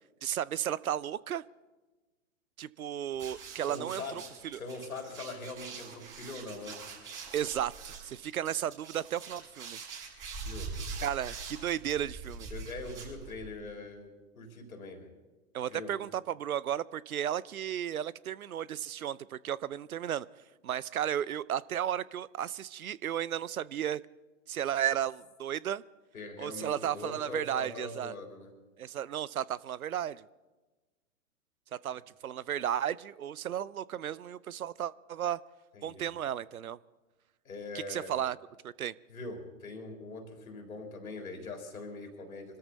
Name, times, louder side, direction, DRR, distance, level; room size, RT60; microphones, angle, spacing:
voice 1, 0.2-1.4 2.6-4.0 4.4-4.6 7.3-9.8 11.0-12.5 15.5-20.3 20.6-24.0 24.5-25.8 26.4-28.1 28.8-30.3 31.8-35.4 35.8-36.8 37.9-38.4 38.6-38.9, right 10 dB, 90° right, 21 dB, 0.6 m, -34 dB
sound 1, 3.1-13.6, right 4 dB, 25° right, 6.9 m, -43 dB
voice 2, 3.6-6.8 10.4-10.8 12.5-15.1 15.7-15.9 26.1-28.5 35.7-36.1 37.4-38.2 39.1-42.6, left 3 dB, 85° left, 3 dB, 3.8 m, -42 dB
25.0 x 13.5 x 4.1 m, 1.2 s
hypercardioid pair, 120°, 41 cm